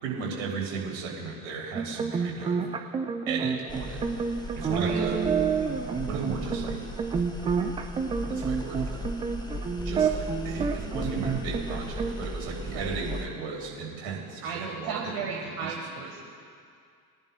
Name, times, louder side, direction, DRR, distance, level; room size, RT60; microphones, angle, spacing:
voice 1, 0.0-2.6 3.3-4.0 4.5-5.2 6.1-6.8 8.3-9.1 9.8-15.5 16.0-16.1, right 4 dB, 65° right, -2 dB, 2.8 m, -35 dB
sound 1, 1.8-12.1, right 6 dB, 15° right, 0.3 m, -29 dB
sound 2, 3.7-13.3, left 1 dB, 10° left, 1.0 m, -37 dB
voice 2, 4.6-5.0 12.7-13.0 14.4-16.2, right 5 dB, 45° right, -2 dB, 1.5 m, -35 dB
22.5 x 10.5 x 2.2 m, 2.3 s
figure-of-eight pair, 65°, 48 cm